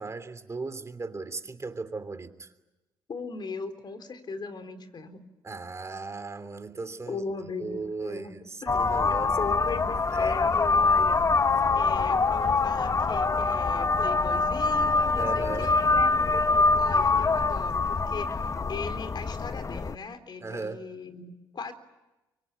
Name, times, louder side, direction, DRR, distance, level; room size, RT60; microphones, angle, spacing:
voice 1, 0.0-2.5 5.4-7.2 7.6-9.6 10.1-10.4 10.9-11.1 15.2-15.7 20.4-20.8, right 3 dB, 30° right, 3.1 m, -37 dB
voice 2, 3.1-5.2 7.1-8.7 9.4-11.3 11.8-21.7, left 4 dB, 50° left, 3.9 m, -38 dB
sound 1, 8.7-20.0, left 3 dB, 35° left, 0.9 m, -24 dB
24.5 x 24.0 x 10.0 m
supercardioid pair, 60°, 10 cm